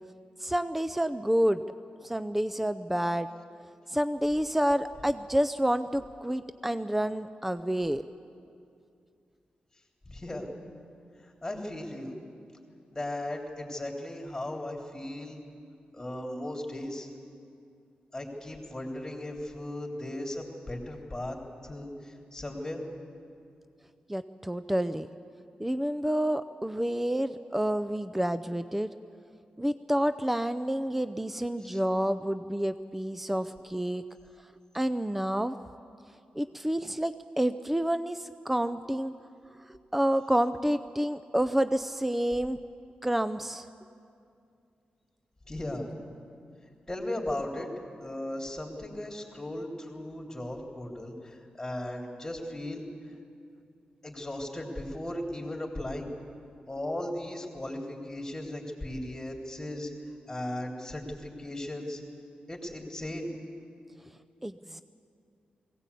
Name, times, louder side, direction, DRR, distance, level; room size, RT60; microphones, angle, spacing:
voice 1, 0.4-1.6 2.0-3.3 3.9-8.0 24.1-25.1 25.6-28.9 29.6-34.0 34.7-35.6 36.4-39.1 39.7-42.6 43.0-43.7 64.4-64.8, equal, 5° right, 11 dB, 0.5 m, -29 dB
voice 2, 10.1-10.5 11.2-12.1 12.9-15.4 15.9-17.1 18.1-22.8 45.5-45.9 46.9-47.7 48.0-52.8 54.0-56.1 56.7-59.9 60.3-62.0 62.5-63.3, left 1 dB, 15° left, 1 dB, 3.4 m, -37 dB
20.0 x 17.0 x 8.4 m, 2.4 s
cardioid pair, 90°, 3 cm